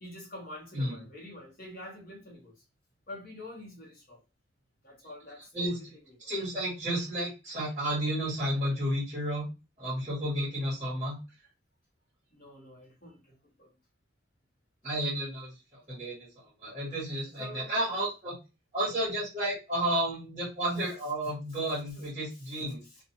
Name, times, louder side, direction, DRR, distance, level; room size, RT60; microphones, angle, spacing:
voice 1, 0.0-2.6 3.1-4.2 4.8-6.3 12.3-13.7 17.4-17.7, left 1 dB, 45° left, 1.0 m, -47 dB
voice 2, 0.7-1.0 5.5-5.8 6.2-9.4 9.8-11.2 14.8-18.3 18.7-22.8, right 1 dB, 25° right, 1.3 m, -32 dB
2.5 x 2.3 x 2.8 m
head